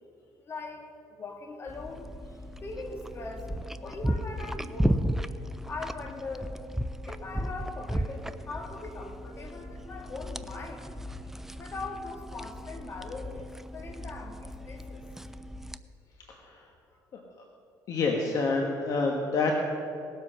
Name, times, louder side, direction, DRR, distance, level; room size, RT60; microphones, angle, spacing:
voice 1, 0.4-3.5 3.8-5.1 5.7-6.5 7.1-10.9 11.5-15.0 16.9-17.0, left 3 dB, 35° left, 2 dB, 2.1 m, -41 dB
sound 1, 1.7-15.8, equal, 5° right, 0.4 m, -35 dB
voice 2, 16.3-16.6 17.1-17.2 17.9-19.6, left 3 dB, 55° left, 1 dB, 1.4 m, -28 dB
19.0 x 7.7 x 5.7 m, 2.6 s
cardioid pair, 115°, 7 cm